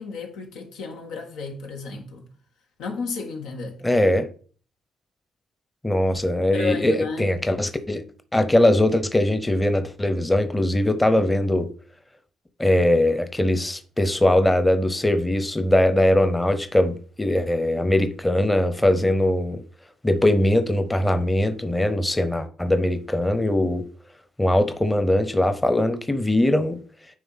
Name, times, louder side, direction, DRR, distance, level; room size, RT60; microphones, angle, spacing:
voice 1, 0.0-2.3 2.8-3.8 6.5-7.3, left 5 dB, 90° left, 1.7 m, -32 dB
voice 2, 3.8-4.3 5.8-8.0 8.3-11.7 12.6-19.6 20.0-23.8 24.4-26.8, left 1 dB, 10° left, 0.8 m, -21 dB
9.2 x 3.4 x 5.8 m
cardioid pair, 90°, 0 cm